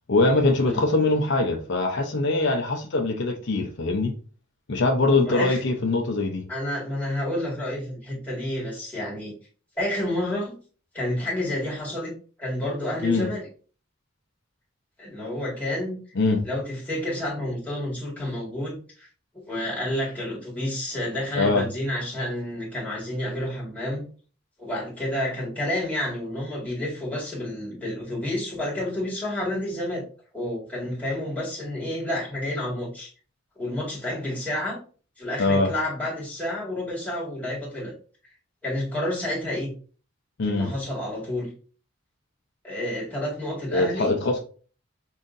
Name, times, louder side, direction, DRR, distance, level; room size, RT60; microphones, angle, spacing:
voice 1, 0.1-4.1 4.7-6.4 13.0-13.3 16.2-16.4 21.3-21.6 35.4-35.7 40.4-40.7 43.7-44.4, left 2 dB, 60° left, 2 dB, 0.6 m, -22 dB
voice 2, 5.1-5.6 6.5-9.3 9.8-10.5 10.9-13.5 15.0-16.0 16.5-19.1 19.5-24.1 24.6-30.0 30.3-33.1 33.6-34.8 35.2-37.9 38.6-39.7 40.4-41.5 42.6-44.1, left 1 dB, 10° left, -6 dB, 1.8 m, -30 dB
5.6 x 2.7 x 2.5 m, 0.39 s
head